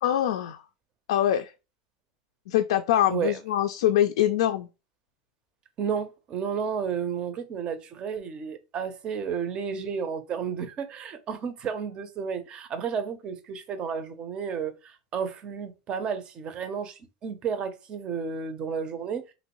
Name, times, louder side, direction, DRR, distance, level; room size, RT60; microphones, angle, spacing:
voice 1, 0.0-0.6 1.1-1.5 2.5-4.7, left 11 dB, 80° left, 0.3 m, -24 dB
voice 2, 5.8-19.3, right 6 dB, 30° right, 0.5 m, -32 dB
3.0 x 2.6 x 2.9 m
supercardioid pair, 140°, 3 cm